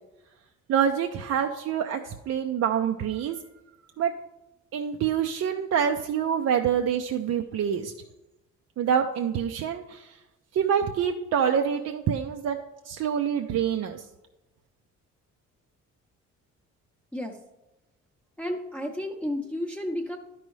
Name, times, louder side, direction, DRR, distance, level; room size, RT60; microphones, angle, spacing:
voice 1, 0.7-3.4 4.0-4.1 4.7-7.9 8.8-10.1 10.5-12.6 12.9-14.0, right 8 dB, 60° right, 4 dB, 0.5 m, -26 dB
voice 2, 18.4-20.2, left 1 dB, 5° left, 0 dB, 0.7 m, -32 dB
11.0 x 5.4 x 3.1 m, 1.0 s
cardioid pair, 90°, 30 cm